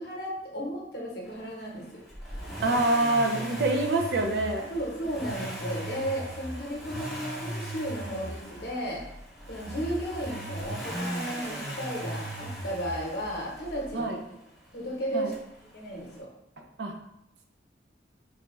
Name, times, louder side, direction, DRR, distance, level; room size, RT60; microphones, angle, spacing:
voice 1, 0.0-2.0 4.7-9.0 9.5-14.4 14.7-15.3 15.7-16.3, equal, 60° left, -2 dB, 0.9 m, -34 dB
Accelerating revving vroom, 2.1-14.0 15.3-15.4, equal, ahead, 0.6 m, -37 dB
voice 2, 2.6-4.7 13.9-14.2 15.1-15.3 16.6-17.0, right 2 dB, 70° right, 4 dB, 0.5 m, -26 dB
3.8 x 2.3 x 3.0 m, 0.82 s
head